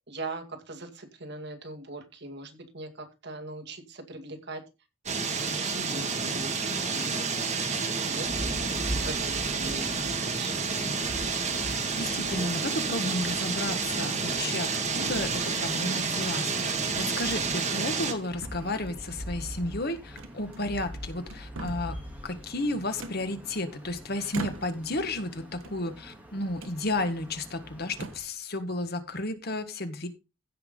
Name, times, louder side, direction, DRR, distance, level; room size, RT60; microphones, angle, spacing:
voice 1, 0.1-4.6 5.2-7.3 7.5-8.6 9.0-10.5, right 2 dB, 55° right, 3 dB, 2.4 m, -41 dB
sound 1, 5.1-18.1, right 4 dB, 35° right, 2.0 m, -30 dB
sound 2, 8.2-28.2, equal, 10° right, 2.7 m, -43 dB
voice 2, 11.7-22.0 22.2-30.1, left 2 dB, 50° left, 8 dB, 1.7 m, -33 dB
sound 3, 16.5-16.8 17.2-17.3 17.8-18.2 18.4-19.1 20.2-20.9 21.2-22.0 23.0-23.8 24.3-25.0 25.5-26.2 26.6-26.8 27.4-27.5 27.9-28.4, right 2 dB, 75° right, 1.5 m, -43 dB
16.0 x 5.8 x 3.9 m, 0.27 s
head